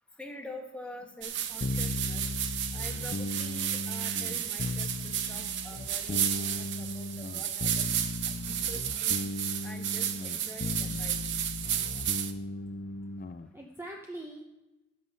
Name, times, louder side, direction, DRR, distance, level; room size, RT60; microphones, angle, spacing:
voice 1, 0.2-2.2 2.7-7.9 8.2-9.2 9.6-11.2, left 1 dB, 5° left, 2 dB, 1.3 m, -46 dB
sound 1, 1.2-12.3, right 10 dB, 60° right, 0.7 m, -33 dB
sound 2, 1.6-13.5, left 2 dB, 40° left, 0.4 m, -36 dB
voice 2, 5.0-5.5 13.5-14.4, right 1 dB, 10° right, 0 dB, 0.7 m, -47 dB
13.0 x 7.7 x 4.1 m, 1.0 s
head